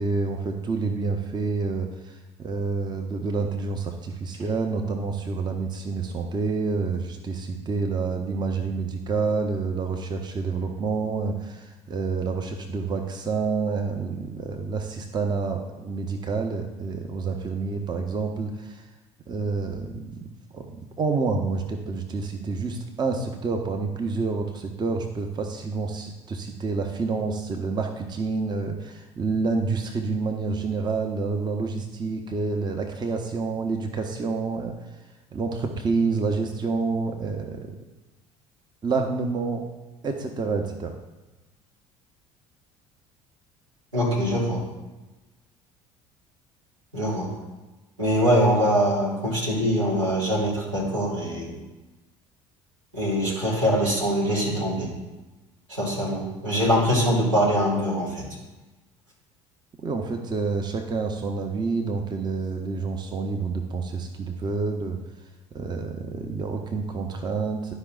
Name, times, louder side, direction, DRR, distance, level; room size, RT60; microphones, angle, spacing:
voice 1, 0.0-18.9 19.3-20.2 20.5-35.0 35.3-37.8 38.8-39.7 40.0-41.0 59.8-65.0 65.5-67.7, right 4 dB, 25° right, 4 dB, 0.8 m, -28 dB
voice 2, 43.9-44.6 46.9-47.3 48.0-51.6 52.9-54.9 55.7-58.2, equal, 85° right, -5 dB, 2.5 m, -23 dB
11.5 x 5.3 x 2.4 m, 1.1 s
figure-of-eight pair, 60°, 16 cm